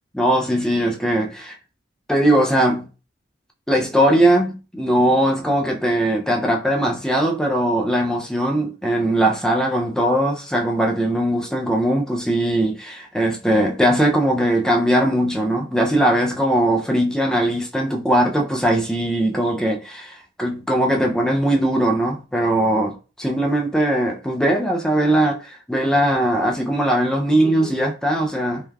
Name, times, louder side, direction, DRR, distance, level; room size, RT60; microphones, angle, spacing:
voice 1, 0.1-1.6 2.1-2.9 3.7-28.6, right 1 dB, 5° left, 0.3 m, -20 dB
3.2 x 2.2 x 2.2 m
head